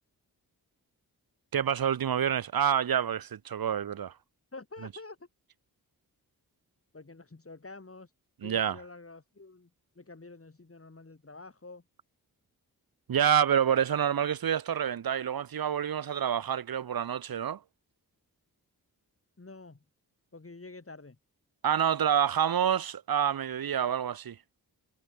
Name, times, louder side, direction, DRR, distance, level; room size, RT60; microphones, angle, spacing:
voice 1, 1.5-4.1 8.4-8.8 13.1-17.6 21.6-24.4, right 9 dB, 70° right, 1.0 m, -27 dB
voice 2, 4.5-5.3 6.9-8.1 8.4-9.7 9.9-11.8 19.4-19.8 20.3-21.2, left 3 dB, 35° left, 8.0 m, -48 dB
cardioid pair, 60°, 37 cm